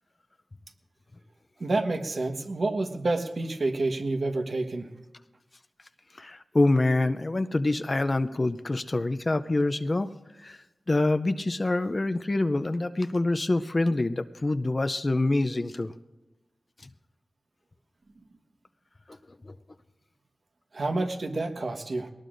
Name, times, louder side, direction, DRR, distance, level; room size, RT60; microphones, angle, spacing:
voice 1, 1.6-4.9 20.7-22.1, right 2 dB, 65° right, 5 dB, 1.3 m, -28 dB
voice 2, 6.2-10.1 10.4-15.9 19.4-19.5, left 2 dB, 40° left, 10 dB, 0.5 m, -26 dB
21.5 x 19.0 x 2.6 m, 1.0 s
wide cardioid pair, 65°, 0 cm